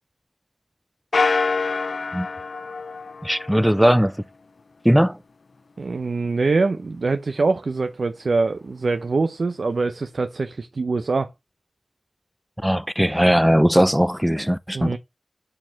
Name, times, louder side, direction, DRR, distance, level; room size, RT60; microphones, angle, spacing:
sound 1, 1.1-3.8, left 4 dB, 70° left, 0.4 m, -25 dB
voice 1, 3.2-4.1 4.8-5.2 12.6-14.9, equal, 5° right, 0.4 m, -18 dB
voice 2, 5.8-11.3 14.7-15.0, right 3 dB, 70° right, 0.7 m, -24 dB
8.7 x 4.5 x 5.7 m
wide cardioid pair, 75°, 0 cm